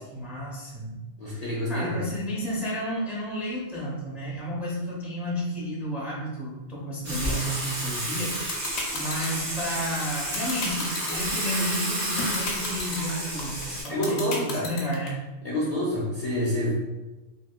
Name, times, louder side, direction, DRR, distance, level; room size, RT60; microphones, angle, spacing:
voice 1, 0.1-1.0 1.2-8.6 8.9-15.2, equal, ahead, -6 dB, 0.6 m, -32 dB
voice 2, 1.2-2.0 13.9-14.7 15.4-16.7, left 1 dB, 40° left, -7 dB, 0.6 m, -27 dB
Water / Water tap faucet / Sink (filling or washing), 7.0-13.8, right 1 dB, 50° right, 1.3 m, -31 dB
sound 1, 8.1-15.1, left 3 dB, 65° left, 0.9 m, -32 dB
3.3 x 2.7 x 2.3 m, 1.1 s
omnidirectional pair, 1.3 m